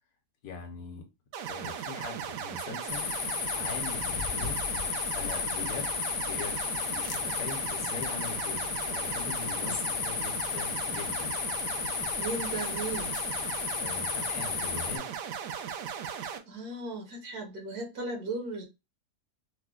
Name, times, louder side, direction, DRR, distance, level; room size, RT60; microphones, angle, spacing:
voice 1, 0.4-1.1 1.5-3.1 3.5-4.7 5.1-5.9 6.3-6.6 6.9-11.4 13.8-15.1, left 5 dB, 65° left, 1.2 m, -41 dB
sound 1, 1.3-16.4, right 8 dB, 90° right, 1.2 m, -37 dB
sound 2, 2.9-15.0, left 8 dB, 85° left, 1.2 m, -33 dB
voice 2, 12.2-13.1 16.2-18.6, right 2 dB, 70° right, 1.4 m, -36 dB
4.8 x 2.1 x 2.3 m
omnidirectional pair, 1.8 m